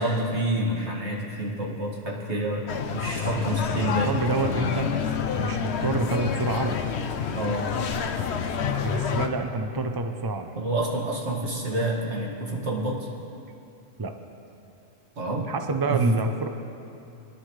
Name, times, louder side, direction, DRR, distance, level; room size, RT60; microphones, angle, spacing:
voice 1, 0.0-2.7 2.9-4.1 7.3-7.7 10.5-13.1 15.2-15.5 15.9-16.0, right 1 dB, 60° right, -3 dB, 2.3 m, -28 dB
sound 1, 2.7-9.3, left 7 dB, 65° left, 1.0 m, -28 dB
voice 2, 3.1-4.9 5.4-6.8 8.7-10.5 14.0-14.1 15.5-16.5, right 3 dB, 30° right, 6 dB, 0.5 m, -28 dB
24.0 x 11.0 x 3.2 m, 2.7 s
omnidirectional pair, 1.3 m